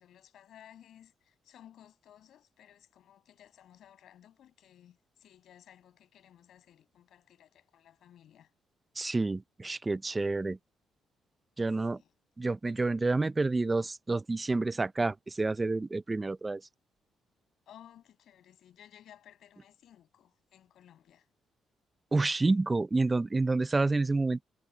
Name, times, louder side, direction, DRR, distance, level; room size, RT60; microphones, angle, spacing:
voice 1, 0.0-8.5 11.9-12.1 17.7-21.3, left 10 dB, 70° left, 7.0 m, -57 dB
voice 2, 9.0-10.6 11.6-12.0 12.4-16.6 22.1-24.4, right 3 dB, 20° right, 0.6 m, -29 dB
cardioid pair, 90°, 0 cm